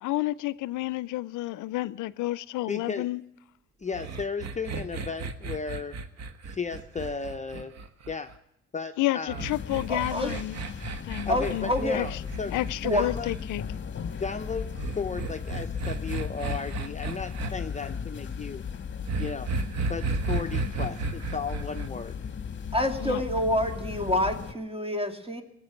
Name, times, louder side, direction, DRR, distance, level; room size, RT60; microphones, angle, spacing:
voice 1, 0.0-3.2 9.0-10.6 11.1-12.2 12.5-13.6 23.0-23.2, left 17 dB, 80° left, 0.5 m, -30 dB
voice 2, 2.7-3.1 3.8-6.0 6.5-7.7 8.1-8.3 8.7-9.4 11.3-12.6 12.9-13.4 14.2-18.6 19.2-19.5 19.9-22.3, left 5 dB, 25° left, 0.7 m, -35 dB
sound 1, 3.9-8.3 9.3-13.4 14.8-17.5 19.1-21.9, right 3 dB, 60° right, 1.4 m, -33 dB
sound 2, 9.4-24.5, left 6 dB, 40° left, 1.4 m, -37 dB
voice 3, 9.9-10.3 11.3-12.0 12.8-13.1 22.7-25.4, left 1 dB, 20° right, 2.4 m, -27 dB
18.5 x 8.0 x 9.0 m
cardioid pair, 90°, 30 cm